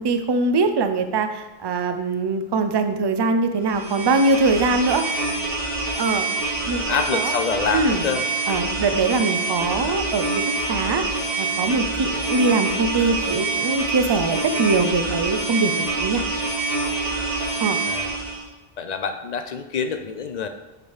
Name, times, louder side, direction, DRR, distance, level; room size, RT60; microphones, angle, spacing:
voice 1, 0.0-5.3 6.0-6.3 6.7-6.8 7.1-7.3 7.7-8.0 8.5-11.0 11.4-15.7 16.0-16.2 17.6-17.8, right 3 dB, 40° right, 8 dB, 0.4 m, -22 dB
sound 1, 3.6-18.4, right 3 dB, 75° right, 2.3 m, -26 dB
voice 2, 6.8-8.2 12.1-12.3 17.9-18.1 18.8-20.5, left 5 dB, 55° left, 7 dB, 0.5 m, -26 dB
7.8 x 5.2 x 3.3 m, 1.1 s
omnidirectional pair, 1.1 m